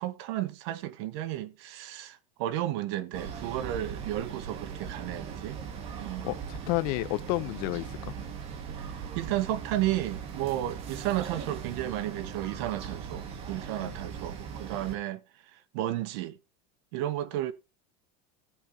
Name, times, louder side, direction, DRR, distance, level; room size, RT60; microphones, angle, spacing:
voice 1, 0.0-5.6 6.0-6.3 8.8-15.2 15.5-16.4 16.9-17.5, right 13 dB, 65° right, 1.1 m, -33 dB
sound 1, 3.1-15.0, right 7 dB, 40° right, 1.8 m, -40 dB
voice 2, 6.2-8.1 13.8-13.9, left 20 dB, 55° left, 0.8 m, -31 dB
16.5 x 8.2 x 2.8 m
supercardioid pair, 155°, 15 cm